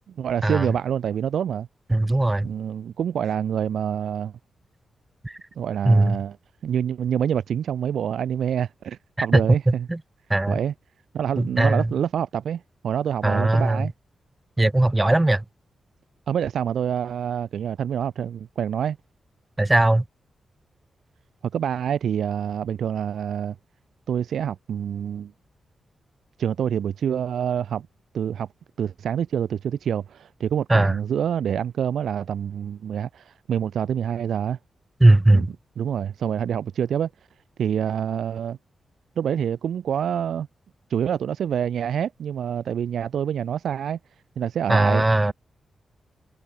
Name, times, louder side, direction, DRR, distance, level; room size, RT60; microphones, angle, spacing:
voice 1, 0.2-1.7 2.4-4.3 5.6-6.4 6.6-9.9 10.5-10.7 11.1-13.9 16.3-19.0 21.5-23.6 24.1-25.3 26.4-27.9 28.1-28.5 28.8-34.6 35.3-37.1 37.6-38.6 39.2-40.5 40.9-44.0 44.4-45.3, right 8 dB, 80° right, 2.8 m, -26 dB
voice 2, 1.9-2.5 5.2-5.3 5.8-6.2 9.2-9.4 9.9-10.0 10.3-10.6 11.4-11.8 13.2-13.8 14.6-15.4 19.6-20.0 30.7-30.9 35.0-35.5 44.7-45.3, right 2 dB, 20° right, 1.1 m, -18 dB
cardioid pair, 65°, 0 cm